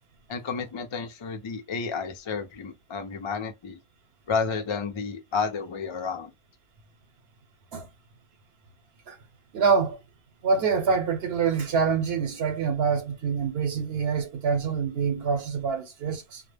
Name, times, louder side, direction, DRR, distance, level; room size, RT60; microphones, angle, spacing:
voice 1, 0.3-3.8 4.3-6.3, left 5 dB, 50° left, 0.3 m, -31 dB
voice 2, 9.5-10.0 10.4-16.4, right 5 dB, 75° right, 0.9 m, -25 dB
2.1 x 2.0 x 3.2 m
omnidirectional pair, 1.1 m